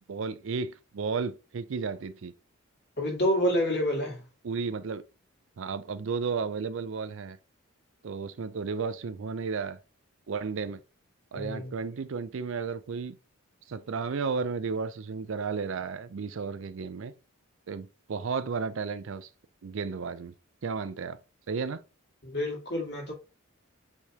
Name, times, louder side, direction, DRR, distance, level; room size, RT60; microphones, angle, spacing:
voice 1, 0.1-2.3 4.4-5.0 5.6-7.4 8.0-9.8 10.3-10.8 11.3-13.2 13.7-17.1 17.7-19.3 19.6-20.3 20.6-21.2 21.5-21.8, right 5 dB, 65° right, 0.4 m, -33 dB
voice 2, 3.0-4.2 11.3-11.7 22.2-23.1, equal, 50° left, 1.7 m, -28 dB
4.6 x 3.4 x 2.8 m
head